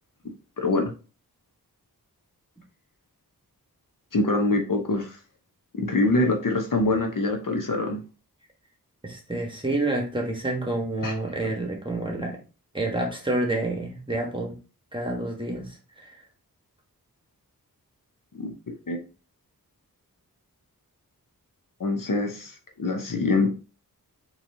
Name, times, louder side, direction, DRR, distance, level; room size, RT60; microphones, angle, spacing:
voice 1, 0.6-0.9 4.1-5.2 5.7-8.0 11.0-11.1 18.4-18.5 18.9-19.0 21.8-23.6, left 2 dB, 60° left, 3 dB, 0.8 m, -24 dB
voice 2, 9.0-12.4 12.7-14.5 14.9-16.2, right 2 dB, 15° right, 1 dB, 1.3 m, -28 dB
4.1 x 3.0 x 2.7 m, 0.33 s
wide cardioid pair, 55°, 37 cm